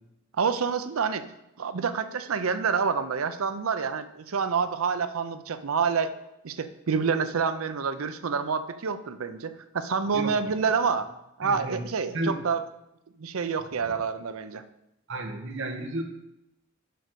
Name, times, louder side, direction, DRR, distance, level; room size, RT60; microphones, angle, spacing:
voice 1, 0.4-1.2 1.6-6.1 6.4-11.1 11.4-12.6 13.2-14.6, right 5 dB, 90° right, 11 dB, 0.6 m, -27 dB
voice 2, 11.4-11.8 12.1-12.3 15.1-16.0, right 2 dB, 60° right, 4 dB, 1.2 m, -32 dB
6.8 x 5.1 x 6.2 m, 0.84 s
head